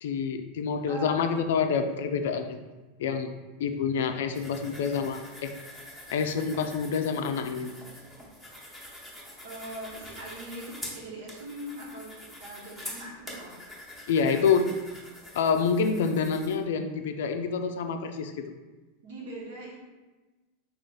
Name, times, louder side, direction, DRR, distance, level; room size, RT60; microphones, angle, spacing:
voice 1, 0.0-2.6 3.0-3.3 3.6-5.5 6.1-7.7 14.1-14.7 15.3-18.5, left 6 dB, 80° left, 7 dB, 0.3 m, -27 dB
voice 2, 0.8-1.3 9.4-12.1 12.4-13.6 19.0-19.8, right 1 dB, 80° right, -3 dB, 1.1 m, -41 dB
sound 1, 4.3-16.6, left 1 dB, 5° right, 0.9 m, -45 dB
3.4 x 2.4 x 3.8 m, 1.2 s
supercardioid pair, 125°, 0 cm